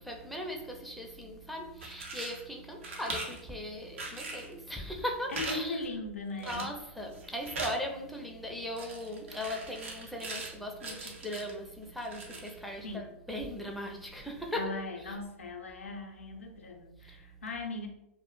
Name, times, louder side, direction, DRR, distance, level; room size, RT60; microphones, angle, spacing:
voice 1, 0.0-5.8 6.4-14.7 15.0-15.2 17.0-17.2, left 1 dB, ahead, 0.4 m, -39 dB
sound 1, 1.7-2.4 2.8-3.4 4.0-4.5 5.3-5.6 5.8-5.9 6.4-6.8 7.1-7.8 8.8-10.5 10.8-11.5 12.0-12.6, right 2 dB, 80° right, 0.6 m, -40 dB
voice 2, 5.3-6.8 12.8-13.2 14.5-17.9, left 3 dB, 90° left, 0.5 m, -39 dB
2.1 x 2.1 x 2.9 m
hypercardioid pair, 100°, 7 cm